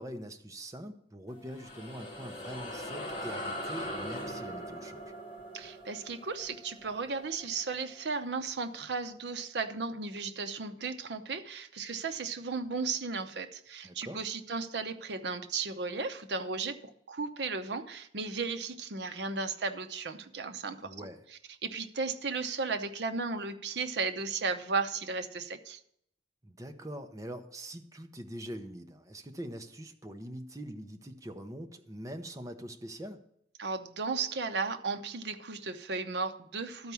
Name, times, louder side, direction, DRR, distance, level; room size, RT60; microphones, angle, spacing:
voice 1, 0.0-5.0 13.8-14.2 20.8-21.2 26.4-33.2, right 1 dB, 20° right, 5 dB, 0.8 m, -43 dB
sound 1, 1.3-8.1, equal, 30° left, 2.2 m, -41 dB
voice 2, 5.5-20.9 21.6-25.8 33.6-36.9, right 4 dB, 70° right, 8 dB, 0.8 m, -35 dB
12.5 x 4.7 x 6.9 m, 0.72 s
head